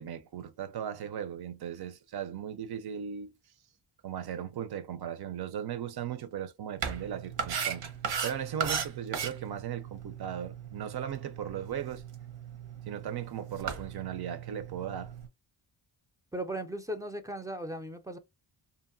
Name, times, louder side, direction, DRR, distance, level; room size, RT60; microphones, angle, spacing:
voice 1, 0.0-3.3 4.0-7.9 8.2-12.0 12.9-15.1, right 9 dB, 60° right, 0.5 m, -37 dB
sound 1, 6.8-15.3, right 7 dB, 80° right, 0.8 m, -38 dB
voice 2, 16.3-18.2, right 1 dB, 10° right, 0.4 m, -37 dB
2.8 x 2.5 x 2.5 m
wide cardioid pair, 105°, 45 cm